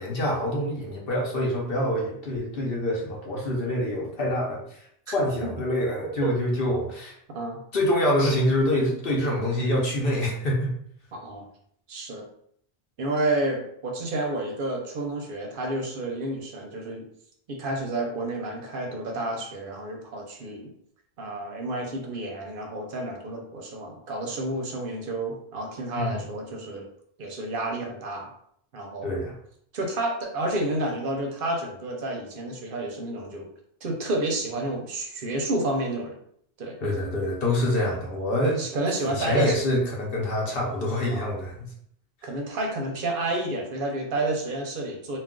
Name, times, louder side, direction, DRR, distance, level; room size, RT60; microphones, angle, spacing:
voice 1, 0.0-4.8 5.1-7.1 7.7-10.7 25.9-26.2 29.0-29.3 36.8-38.6 39.0-41.7, left 1 dB, 60° left, -2 dB, 0.8 m, -26 dB
voice 2, 11.1-11.5 11.9-12.3 13.0-17.1 17.5-20.7 21.2-26.9 27.2-28.3 28.7-29.2 29.7-33.5 33.8-36.2 36.6-36.8 37.8-37.9 38.6-39.6 41.1-41.3 42.2-45.2, right 2 dB, 60° right, 1 dB, 0.7 m, -30 dB
2.3 x 2.3 x 3.6 m, 0.68 s
omnidirectional pair, 1.2 m